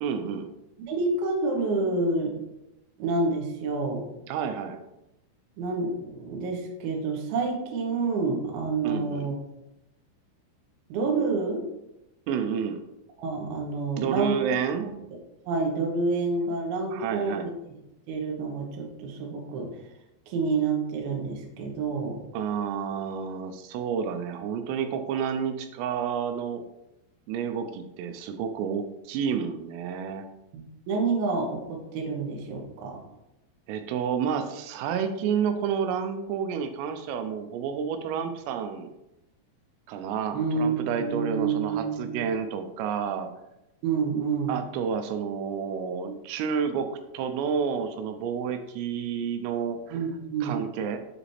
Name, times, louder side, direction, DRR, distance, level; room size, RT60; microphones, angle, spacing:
voice 1, 0.0-0.5 4.3-4.8 8.8-9.4 12.3-12.8 14.0-14.9 16.9-17.5 22.3-26.6 27.3-30.2 33.7-38.9 39.9-43.3 44.5-49.8 50.4-51.0, right 7 dB, 90° right, 8 dB, 3.3 m, -30 dB
voice 2, 0.9-2.4 3.0-4.0 5.6-9.4 10.9-11.6 13.2-14.4 14.8-14.9 15.5-17.5 18.1-19.7 20.3-22.2 30.5-33.0 40.3-42.2 43.8-44.6 49.9-50.6, right 4 dB, 70° right, 0 dB, 2.4 m, -28 dB
7.5 x 4.9 x 3.3 m, 0.90 s
omnidirectional pair, 5.7 m